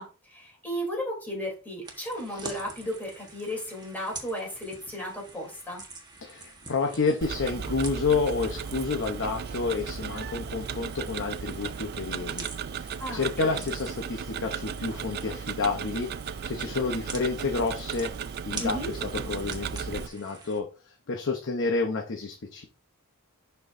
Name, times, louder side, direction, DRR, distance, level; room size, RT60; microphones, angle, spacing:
voice 1, 0.0-5.8 13.0-13.6 18.6-18.9, equal, 10° left, -2 dB, 3.3 m, -35 dB
sound 1, 1.8-20.6, right 3 dB, 20° right, 1.3 m, -46 dB
voice 2, 6.2-12.5 12.7-18.1 18.5-22.7, left 4 dB, 60° left, 3 dB, 0.8 m, -30 dB
Tick-tock, 7.2-20.1, right 7 dB, 45° right, 0.4 m, -35 dB
11.0 x 4.5 x 2.6 m, 0.35 s
head